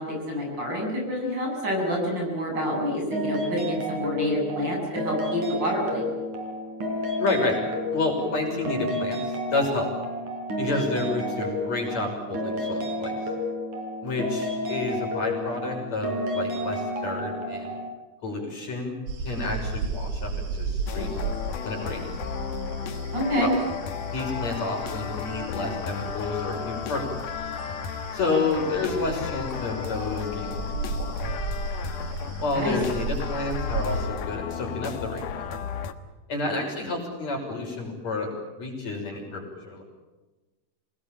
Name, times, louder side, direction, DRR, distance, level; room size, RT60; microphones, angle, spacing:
voice 1, 0.0-6.1 23.1-23.5 32.5-32.8, equal, 30° right, 0 dB, 8.8 m, -28 dB
sound 1, 3.1-17.9, left 1 dB, 65° right, 5.9 m, -31 dB
voice 2, 7.2-7.6 7.9-9.9 10.6-13.1 14.0-17.7 18.2-19.0 19.2-21.1 21.6-22.0 23.4-23.5 24.1-27.1 28.1-31.1 32.4-35.6 36.3-38.3 38.6-39.8, left 3 dB, 55° left, 1 dB, 7.4 m, -30 dB
sound 2, 19.1-34.1, right 4 dB, 90° right, 4.4 m, -35 dB
sound 3, 20.9-35.9, left 7 dB, 85° left, 3.0 m, -34 dB
28.0 x 20.0 x 9.1 m, 1.2 s
omnidirectional pair, 3.6 m